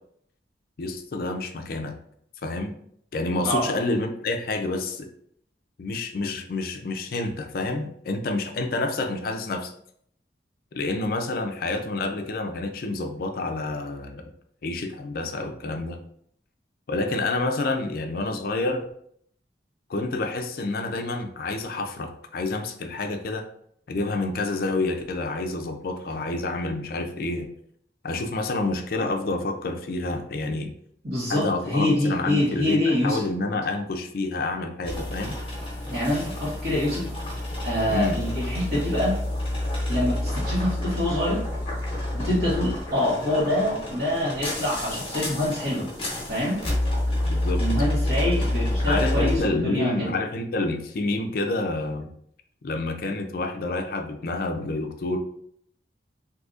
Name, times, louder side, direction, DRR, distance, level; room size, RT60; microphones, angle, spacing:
voice 1, 0.8-2.0 2.4-2.7 3.1-5.1 5.8-9.7 10.7-14.2 14.6-16.0 16.9-18.9 19.9-23.4 23.9-27.5 28.0-30.7 31.3-35.4 37.9-38.2 47.3-47.6 48.2-48.3 48.9-52.1 52.6-55.2, left 2 dB, 55° left, 5 dB, 0.4 m, -28 dB
voice 2, 31.0-33.2 35.9-37.1 37.6-39.2 39.9-41.4 42.1-45.9 46.3-46.6 47.6-50.1, left 1 dB, 55° right, -9 dB, 1.4 m, -25 dB
sound 1, 34.8-49.4, left 1 dB, 30° left, 1.1 m, -28 dB
3.8 x 2.7 x 2.4 m, 0.68 s
head